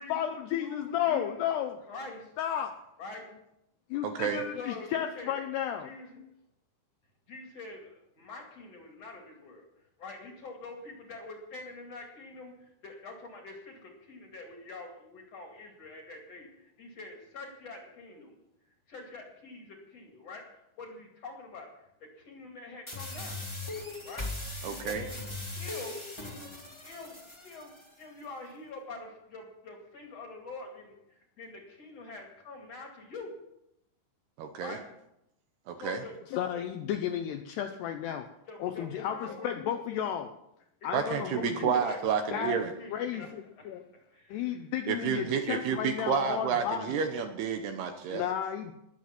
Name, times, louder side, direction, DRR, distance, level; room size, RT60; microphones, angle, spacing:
voice 1, 0.0-1.8 2.4-2.7 3.9-5.9 6.2-6.3 36.3-38.3 38.6-40.3 40.8-41.8 42.3-42.6 42.9-43.8 44.3-47.0 47.9-48.7, left 10 dB, 80° left, 7 dB, 2.4 m, -33 dB
voice 2, 0.6-1.4 1.9-2.3 3.0-3.3 4.5-5.4 5.8-6.2 7.3-18.4 18.9-23.4 24.0-24.3 24.6-25.2 25.6-26.1 26.8-27.2 27.4-33.3 34.6-34.9 35.8-36.1 38.5-39.6 40.8-42.0 42.8-43.3 43.6-43.7 43.9-44.5 44.8-45.4 48.0-48.1, left 3 dB, 45° left, 1 dB, 2.6 m, -45 dB
voice 3, 4.0-4.4 24.6-25.0 34.4-34.8 35.7-36.0 40.9-42.7 44.9-48.2, right 7 dB, 75° right, 6 dB, 2.6 m, -30 dB
sound 1, 22.9-27.9, left 2 dB, 15° left, 1.1 m, -39 dB
20.5 x 7.8 x 6.0 m, 0.83 s
omnidirectional pair, 5.5 m